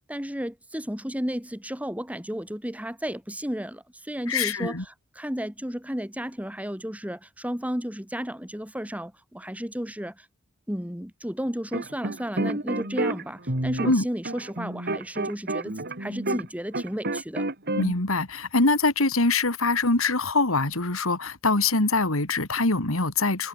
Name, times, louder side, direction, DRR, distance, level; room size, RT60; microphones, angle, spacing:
voice 1, 0.1-10.3 10.7-17.5, equal, 5° right, 5.1 m, -33 dB
voice 2, 4.3-4.8 13.8-14.0 17.8-23.5, left 3 dB, 70° left, 2.9 m, -23 dB
sound 1, 11.7-16.5 16.7-17.9, right 2 dB, 50° right, 4.0 m, -29 dB
head